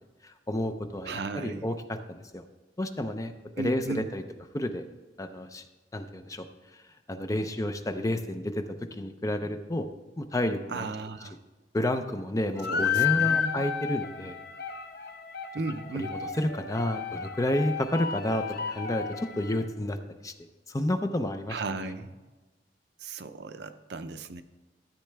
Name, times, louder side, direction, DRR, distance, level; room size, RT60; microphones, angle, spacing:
voice 1, 0.2-2.0 2.3-2.4 2.8-4.2 4.5-4.8 5.2-5.6 5.9-6.5 7.1-9.9 10.2-10.9 11.7-14.4 15.9-20.0 20.2-20.3 20.7-21.6 21.8-21.9, left 1 dB, 20° left, 8 dB, 0.5 m, -30 dB
voice 2, 1.1-1.7 3.6-4.1 10.7-11.4 12.7-13.7 15.5-16.2 21.5-22.2 23.0-24.4, right 3 dB, 65° right, 9 dB, 0.6 m, -35 dB
sound 1, 12.6-19.6, left 7 dB, 60° left, 0.8 m, -32 dB
13.5 x 8.3 x 3.4 m, 1.2 s
head